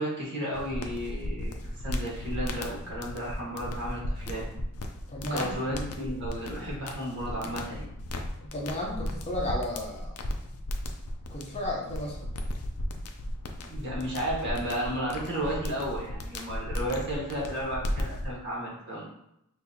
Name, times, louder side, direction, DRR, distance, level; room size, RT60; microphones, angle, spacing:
voice 1, 0.0-4.4 5.3-7.8 13.6-19.0, equal, 50° right, -5 dB, 1.6 m, -33 dB
sound 1, 0.5-18.3, left 1 dB, 80° left, 0.5 m, -36 dB
voice 2, 5.1-5.5 7.4-7.5 8.4-10.2 11.3-12.3, left 1 dB, 30° left, -2 dB, 0.7 m, -33 dB
6.0 x 2.7 x 2.8 m, 0.80 s
head